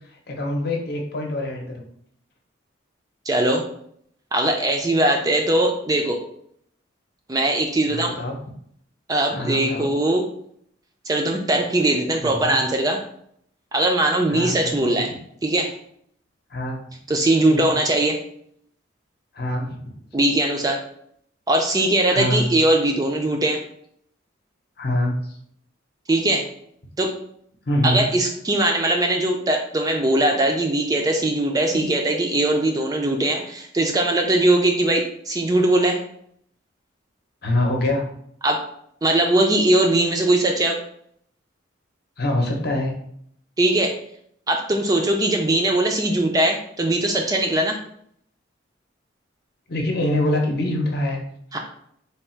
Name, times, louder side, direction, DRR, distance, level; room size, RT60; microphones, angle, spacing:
voice 1, 0.3-1.8 7.9-8.4 9.3-9.9 12.2-12.6 14.3-15.2 16.5-16.9 17.5-17.8 19.3-19.9 22.1-22.5 24.8-25.4 27.7-28.0 31.7-31.9 37.4-38.1 42.2-42.9 49.7-51.2, left 1 dB, 50° left, 1 dB, 0.8 m, -25 dB
voice 2, 3.3-3.6 4.3-6.2 7.3-8.1 9.1-10.2 11.1-13.0 13.7-15.1 15.4-15.7 17.1-18.2 20.1-20.8 21.5-23.6 26.1-26.5 27.0-27.1 27.8-36.0 38.4-38.6 39.0-40.8 43.6-44.0 44.5-47.8 51.5-51.6, right 1 dB, 20° right, 2 dB, 0.4 m, -20 dB
3.4 x 2.3 x 4.4 m, 0.67 s
head